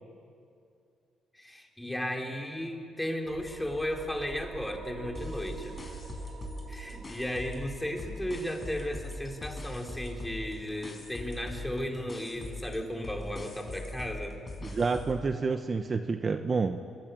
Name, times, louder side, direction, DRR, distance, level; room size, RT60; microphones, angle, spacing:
voice 1, 1.3-5.8 6.7-14.4, left 1 dB, 5° left, 2 dB, 3.9 m, -35 dB
sound 1, 3.3-14.3, right 4 dB, 60° right, 4.7 m, -47 dB
sound 2, 5.1-7.7 8.0-15.2, left 2 dB, 30° left, 5.5 m, -41 dB
voice 2, 14.6-16.8, right 4 dB, 35° right, 8 dB, 1.1 m, -29 dB
24.5 x 23.0 x 9.4 m, 2.5 s
cardioid pair, 90°, 0 cm